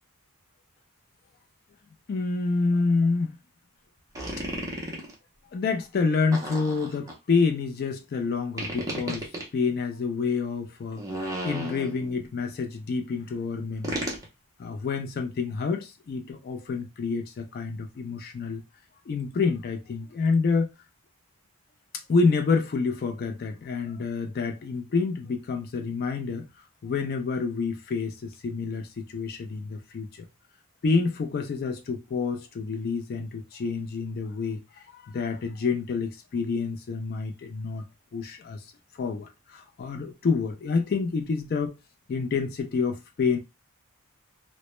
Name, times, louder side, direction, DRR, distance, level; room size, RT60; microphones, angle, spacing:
voice 1, 2.1-3.4 4.4-4.5 5.5-14.1 14.6-18.6 19.1-20.7 22.1-26.5 26.8-30.3 30.8-37.8 38.1-41.7 42.1-43.4, left 4 dB, 45° left, 0.3 m, -28 dB
sound 1, 4.2-5.1 6.3-7.1 8.6-9.5 10.9-12.2 13.8-14.3, right 1 dB, 15° right, 0.5 m, -33 dB
2.1 x 2.0 x 2.9 m
head